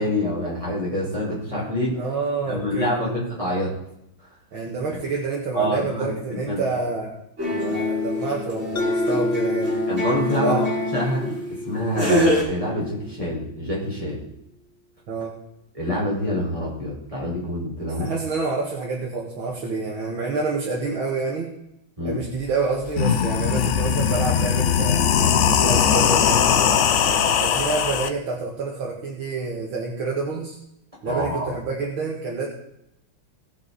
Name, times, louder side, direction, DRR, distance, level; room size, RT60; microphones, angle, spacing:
voice 1, 0.0-2.0 2.5-3.7 5.5-6.6 9.9-10.7 10.9-11.4 11.7-14.2 15.7-18.1 22.0-22.2 31.1-31.5, equal, 15° right, -6 dB, 5.3 m, -26 dB
voice 2, 1.9-3.2 4.5-7.1 7.6-9.7 10.4-10.7 15.1-15.3 17.9-21.5 22.0-25.1 25.5-26.5 27.0-30.6 31.0-32.5, right 4 dB, 80° right, -3 dB, 2.6 m, -28 dB
sound 1, 7.4-11.4 11.9-12.4, left 1 dB, 40° right, 5.9 m, -25 dB
Mallet percussion, 8.8-13.3, left 1 dB, 50° left, 0.8 m, -29 dB
sound 2, 22.4-22.5 22.8-28.1, left 8 dB, 85° left, 0.6 m, -20 dB
19.5 x 6.7 x 4.1 m, 0.81 s
omnidirectional pair, 2.2 m